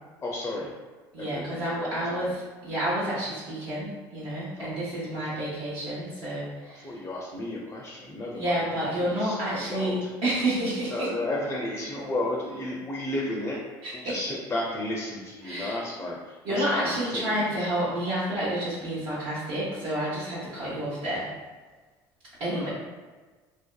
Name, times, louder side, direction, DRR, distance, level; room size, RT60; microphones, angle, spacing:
voice 1, 0.2-0.7 1.2-2.3 4.5-4.8 5.0-5.3 6.7-10.1 10.9-13.6 13.9-17.5 22.4-22.7, left 1 dB, 20° left, -2 dB, 0.4 m, -33 dB
voice 2, 1.1-7.0 8.3-11.1 13.8-14.1 15.4-15.8 16.4-21.3 22.4-22.7, right 1 dB, 65° right, -10 dB, 0.8 m, -29 dB
2.6 x 2.2 x 2.2 m, 1.3 s
supercardioid pair, 80°, 11 cm